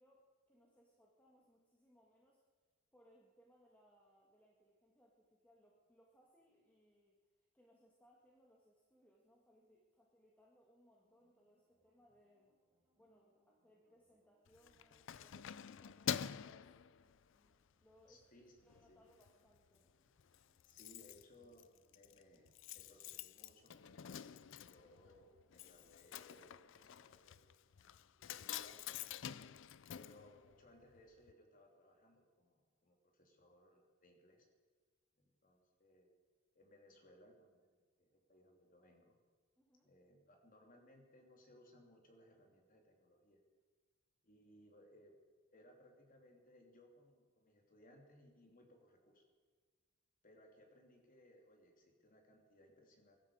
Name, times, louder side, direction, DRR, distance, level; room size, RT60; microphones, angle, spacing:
voice 1, 0.0-2.4 2.9-12.5 13.0-17.0 17.8-18.2 18.6-19.9 39.6-39.9, equal, 10° left, -2 dB, 2.0 m, -70 dB
sound 1, 11.0-26.9, equal, 10° right, 7.0 m, -82 dB
Keys jangling, 14.5-17.5 18.0-18.2 18.6-19.3 19.5-19.6 19.9-20.0 20.2-31.0 31.3-31.4, left 9 dB, 65° left, 0.4 m, -47 dB
voice 2, 18.1-19.0 20.6-24.4 24.7-28.9 29.9-34.5 35.2-36.1 36.5-39.1 39.8-43.4 44.2-45.1 45.5-49.3 50.2-53.2, left 1 dB, 45° left, 2 dB, 3.1 m, -65 dB
22.5 x 12.5 x 5.0 m, 1.5 s
head